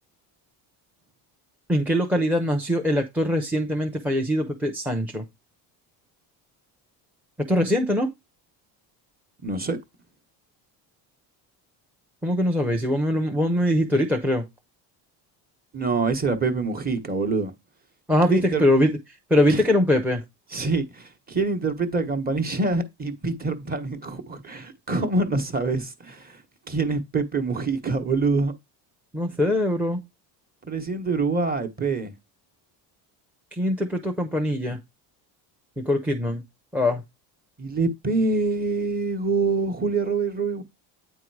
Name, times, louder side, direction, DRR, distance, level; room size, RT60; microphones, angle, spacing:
voice 1, 1.7-5.3 7.5-8.1 12.2-14.5 18.1-18.9 19.3-20.2 29.1-30.0 33.5-34.8 35.8-36.4 36.7-37.0, left 1 dB, 5° right, 0.6 m, -22 dB
voice 2, 9.4-9.8 15.7-17.5 18.3-18.6 19.5-19.6 20.5-26.4 26.7-28.5 30.6-32.1 37.6-40.6, right 3 dB, 20° right, 1.1 m, -25 dB
8.8 x 3.6 x 4.7 m
cardioid pair, 140°, 43 cm